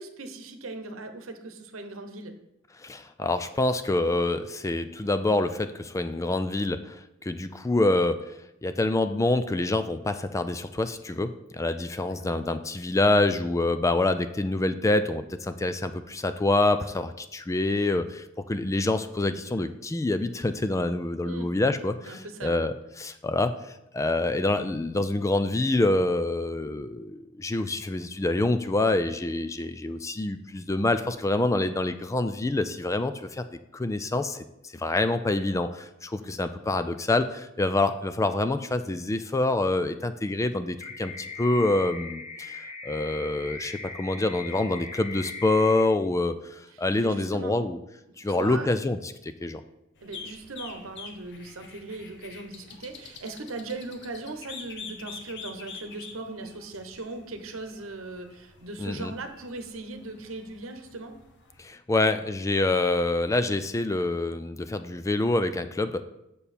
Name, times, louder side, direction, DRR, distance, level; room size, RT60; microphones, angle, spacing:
voice 1, 0.0-2.3 19.5-19.7 21.2-21.5 22.0-22.6 36.2-36.3 46.7-47.5 48.1-48.7 50.0-61.2, right 2 dB, 75° right, 6 dB, 1.0 m, -39 dB
voice 2, 2.8-8.2 8.6-33.4 33.7-34.4 34.7-47.8 48.2-49.6 58.8-59.1 61.6-66.0, left 2 dB, 15° left, 10 dB, 0.3 m, -26 dB
sound 1, 40.8-45.8, left 4 dB, 35° left, 1.6 m, -39 dB
sound 2, 50.0-61.6, left 5 dB, 60° left, 1.1 m, -46 dB
7.1 x 6.8 x 4.3 m, 0.86 s
head